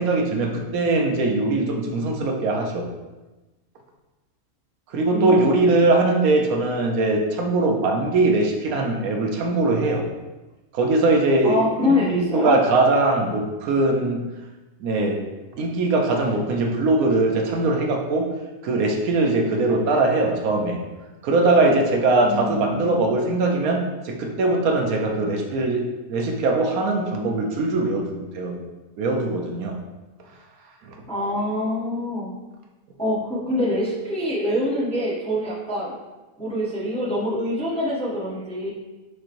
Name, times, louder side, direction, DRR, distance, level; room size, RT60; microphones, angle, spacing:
voice 1, 0.0-2.9 4.9-10.0 10.7-14.2 14.8-15.2 15.6-18.3 18.6-20.8 21.2-28.6 29.0-29.8, right 2 dB, 80° right, 2 dB, 1.1 m, -21 dB
voice 2, 11.4-12.6 22.2-23.1 31.1-32.3 33.0-35.9 36.4-38.7, left 1 dB, 5° left, -6 dB, 0.6 m, -25 dB
6.3 x 2.9 x 2.5 m, 1.1 s
omnidirectional pair, 1.5 m